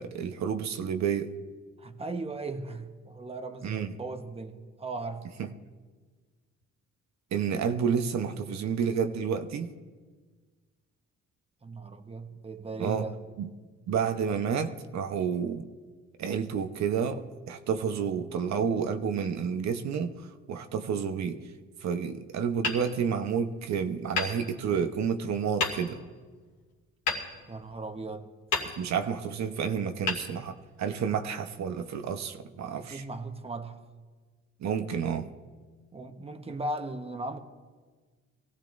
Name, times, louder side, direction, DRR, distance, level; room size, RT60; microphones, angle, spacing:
voice 1, 0.0-1.3 3.6-3.9 5.4-5.5 7.3-9.7 12.8-13.0 13.4-13.5 13.9-15.7 16.2-20.1 20.5-21.4 21.8-26.0 28.7-33.0 34.6-35.3, right 7 dB, 65° right, 7 dB, 1.0 m, -30 dB
voice 2, 1.8-5.3 11.6-13.2 27.5-28.3 32.6-33.8 35.9-37.4, right 2 dB, 20° right, 6 dB, 1.2 m, -37 dB
Hammer, 22.6-23.6 24.1-25.0 25.6-26.2 27.1-28.0 28.5-29.2 30.0-31.0, left 4 dB, 85° left, 2.4 m, -34 dB
23.0 x 16.0 x 2.6 m, 1.4 s
cardioid pair, 90°, 30 cm